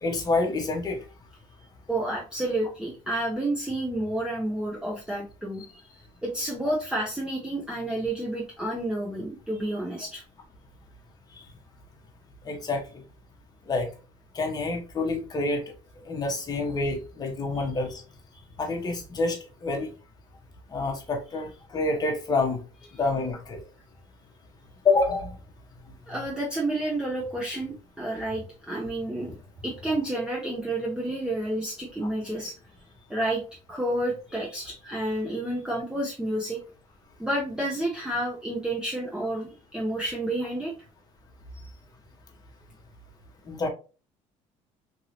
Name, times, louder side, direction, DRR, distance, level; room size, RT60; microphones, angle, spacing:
voice 1, 0.0-1.0 11.3-11.4 12.4-13.0 13.7-13.9 14.3-15.7 16.0-18.0 18.6-19.9 20.7-22.6 22.9-23.6 24.8-25.4 43.5-43.7, left 3 dB, 30° left, 1.0 m, -27 dB
voice 2, 1.9-5.8 6.2-10.2 17.5-17.6 18.3-18.4 26.1-29.4 29.6-32.5 33.1-33.4 33.7-36.6 37.2-40.7 41.6-41.7, right 1 dB, 5° right, 0.7 m, -30 dB
3.0 x 2.6 x 2.8 m
cardioid pair, 115°, 14 cm